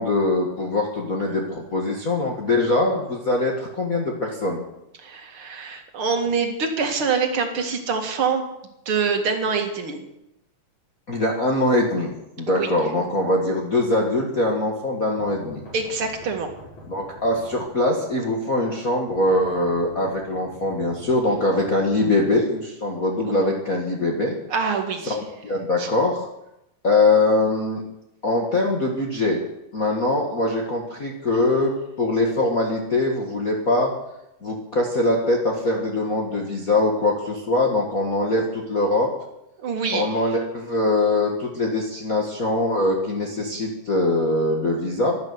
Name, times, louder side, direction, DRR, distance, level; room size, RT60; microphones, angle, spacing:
voice 1, 0.0-4.6 11.1-12.1 12.4-15.6 16.9-24.4 25.1-26.3 26.8-27.8 28.2-29.4 29.7-33.9 34.4-39.1 39.9-45.2, left 2 dB, 35° left, -2 dB, 1.9 m, -22 dB
voice 2, 5.0-8.5 8.9-10.1 12.5-12.7 15.7-16.5 23.2-23.5 24.5-25.2 25.8-25.9 39.6-40.0, right 5 dB, 50° right, 4 dB, 2.6 m, -25 dB
sound 1, 15.2-18.1 19.1-22.4, equal, 70° left, 6.3 m, -45 dB
12.5 x 12.0 x 8.0 m, 0.86 s
omnidirectional pair, 3.3 m